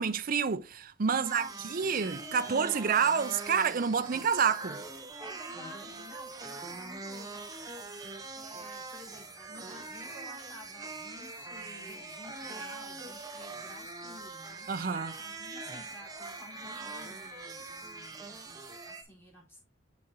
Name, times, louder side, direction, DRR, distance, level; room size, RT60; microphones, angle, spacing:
voice 1, 0.0-4.8 14.7-15.2, right 6 dB, 50° right, 0.5 m, -28 dB
voice 2, 1.1-2.1 5.2-7.5 8.3-14.7 15.2-19.6, left 1 dB, 15° left, 4.2 m, -52 dB
sound 1, 1.2-19.0, right 3 dB, 20° right, 1.2 m, -43 dB
8.5 x 6.5 x 2.9 m
head